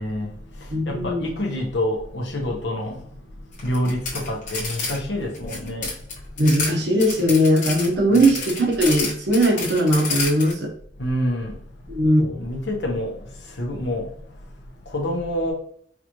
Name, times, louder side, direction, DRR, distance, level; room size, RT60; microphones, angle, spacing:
voice 1, 0.0-6.4 8.1-8.2 11.0-11.6 11.8-11.9 12.2-15.5, left 1 dB, 90° left, 1.1 m, -28 dB
voice 2, 0.7-1.2 6.4-10.7 11.9-12.2, equal, 75° right, 1.0 m, -19 dB
sound 1, 3.5-5.0 5.2-6.7 7.0-10.5, left 4 dB, 45° left, 1.2 m, -29 dB
4.8 x 2.5 x 3.1 m
head